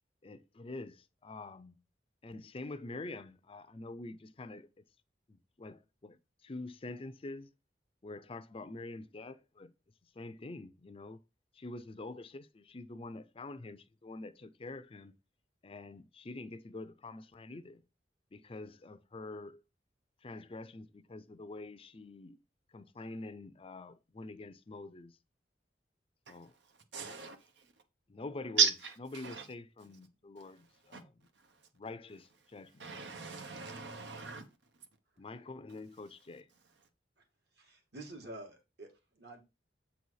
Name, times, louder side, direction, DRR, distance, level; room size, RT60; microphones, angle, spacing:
voice 1, 0.2-1.8 2.2-4.7 5.3-6.2 6.4-7.5 8.0-9.7 10.2-11.2 11.5-15.1 15.6-17.8 18.3-19.6 20.2-22.4 22.7-25.1 26.3-26.5 27.0-27.1 28.1-28.7 29.0-31.1 31.8-32.9 35.2-36.5, left 2 dB, 30° left, 0.5 m, -46 dB
voice 2, 26.9-27.4 28.6-28.7 29.2-29.4 30.9-31.0 32.8-34.4, right 7 dB, 85° right, 1.1 m, -33 dB
voice 3, 37.6-39.4, right 2 dB, 65° right, 2.2 m, -48 dB
7.7 x 4.1 x 4.7 m
head